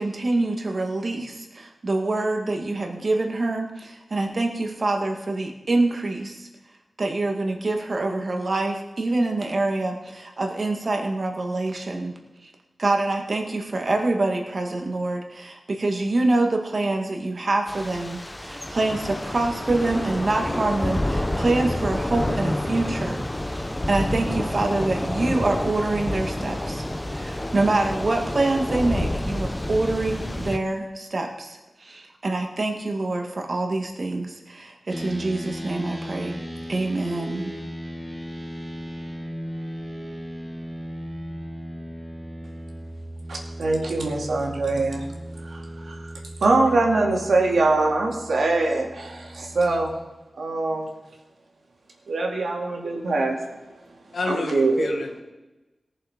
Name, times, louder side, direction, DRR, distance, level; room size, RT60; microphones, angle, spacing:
voice 1, 0.0-6.5 7.0-12.5 12.8-36.4 36.7-37.6, right 2 dB, 50° right, 3 dB, 1.9 m, -26 dB
Thunder / Rain, 17.7-30.6, left 1 dB, 15° left, 0.7 m, -28 dB
sound 1, 34.9-49.9, equal, 10° right, 1.5 m, -37 dB
voice 2, 43.3-45.1 45.5-46.0 46.4-49.9 50.4-50.9 52.1-53.4 54.3-54.9, right 2 dB, 85° right, 0 dB, 2.4 m, -23 dB
voice 3, 54.1-55.2, left 3 dB, 80° left, 3 dB, 1.7 m, -29 dB
18.5 x 7.0 x 5.2 m, 1.1 s
wide cardioid pair, 90°, 0 cm